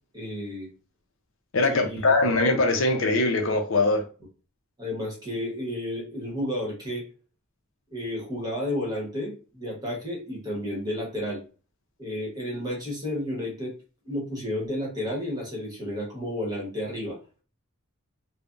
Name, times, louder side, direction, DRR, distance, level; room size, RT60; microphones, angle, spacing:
voice 1, 0.1-0.7 1.7-2.1 4.8-7.0 7.9-11.4 12.0-13.7 14.0-17.2, left 1 dB, 20° right, 1.0 m, -32 dB
voice 2, 1.5-4.1, left 2 dB, 60° left, 0.6 m, -22 dB
3.2 x 2.1 x 2.4 m
head